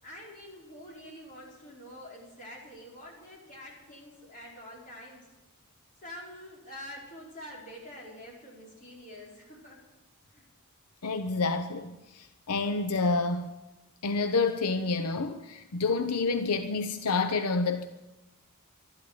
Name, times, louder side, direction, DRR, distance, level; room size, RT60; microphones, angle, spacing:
voice 1, 0.0-5.3 6.0-9.8 10.3-10.5, left 1 dB, 35° left, -4 dB, 5.1 m, -46 dB
voice 2, 11.0-13.5 14.0-17.8, left 3 dB, 85° left, 8 dB, 0.8 m, -28 dB
12.5 x 11.5 x 8.3 m, 1.0 s
head